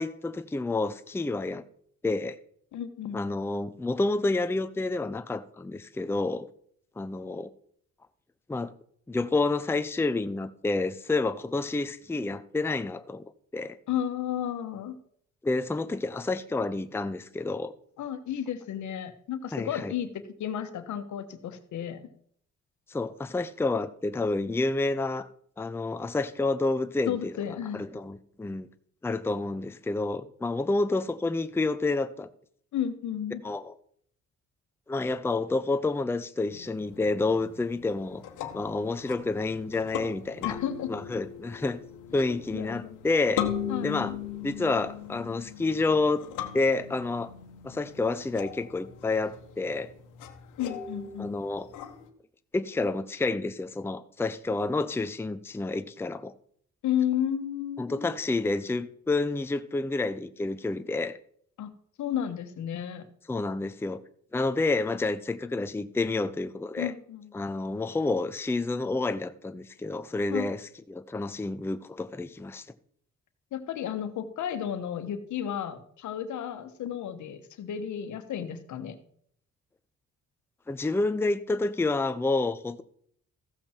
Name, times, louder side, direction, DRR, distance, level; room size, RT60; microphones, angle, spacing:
voice 1, 0.0-1.6 2.0-2.4 3.1-6.5 7.0-7.5 8.5-8.7 9.1-13.2 13.5-13.8 15.4-17.7 19.5-19.9 22.9-25.3 25.6-27.3 27.7-28.7 29.0-32.3 33.4-33.7 34.9-38.2 38.5-40.6 40.9-41.8 42.1-43.5 43.8-44.1 44.4-46.2 46.5-47.3 47.6-49.9 51.2-51.7 52.5-56.3 57.8-61.2 63.3-64.0 64.3-66.9 67.3-72.7 80.7-82.8, left 3 dB, 10° left, 0.6 m, -29 dB
voice 2, 2.7-3.2 13.9-14.9 18.0-20.1 20.4-22.0 27.1-27.9 32.7-33.4 40.4-40.9 42.2-43.0 43.7-44.2 50.6-51.4 56.8-58.1 61.6-61.7 62.0-63.1 66.8-67.3 70.3-70.5 73.5-79.0, left 9 dB, 75° left, 1.3 m, -33 dB
sound 1, 36.5-52.1, left 9 dB, 90° left, 1.3 m, -39 dB
14.5 x 7.5 x 4.4 m
cardioid pair, 90°, 30 cm